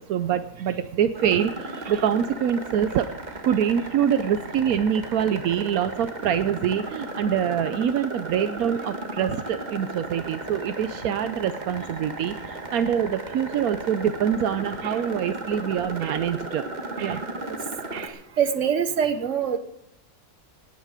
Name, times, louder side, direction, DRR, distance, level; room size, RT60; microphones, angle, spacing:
voice 1, 0.0-3.1 3.4-16.6 17.0-17.3 17.9-18.2, right 9 dB, 80° right, 10 dB, 1.2 m, -25 dB
sound 1, 1.1-18.1, right 2 dB, 30° right, 1.6 m, -35 dB
voice 2, 18.4-19.6, right 7 dB, 60° right, 10 dB, 1.5 m, -24 dB
18.0 x 10.0 x 5.0 m, 0.73 s
omnidirectional pair, 1.5 m